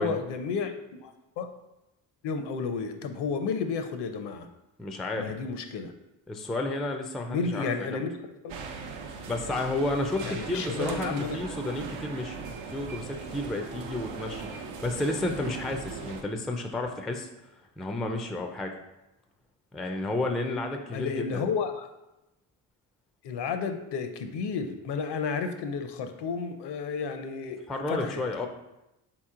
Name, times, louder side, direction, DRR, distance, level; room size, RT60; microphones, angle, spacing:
voice 1, 0.0-1.5 2.2-4.5 5.2-5.9 7.3-8.1 8.4-8.5 10.2-11.8 20.9-21.9 23.2-27.6 27.9-28.5, left 5 dB, 60° left, 7 dB, 0.6 m, -32 dB
voice 2, 4.8-5.3 6.3-8.0 9.3-17.3 17.8-18.8 19.7-21.4 27.7-28.5, left 2 dB, ahead, 4 dB, 0.3 m, -32 dB
sound 1, 8.5-16.2, right 5 dB, 75° right, 0.7 m, -39 dB
4.1 x 3.0 x 3.7 m, 0.94 s
supercardioid pair, 65°, 47 cm